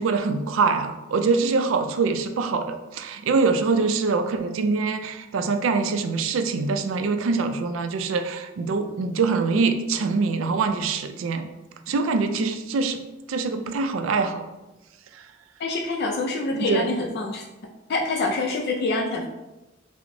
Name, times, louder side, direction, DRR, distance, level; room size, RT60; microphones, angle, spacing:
voice 1, 0.0-11.5 11.9-13.0 13.3-14.4 16.5-17.0, right 4 dB, 90° right, 7 dB, 0.4 m, -24 dB
voice 2, 15.6-17.4 17.9-19.3, left 2 dB, 55° left, 1 dB, 0.4 m, -26 dB
5.8 x 2.0 x 2.6 m, 1.0 s
head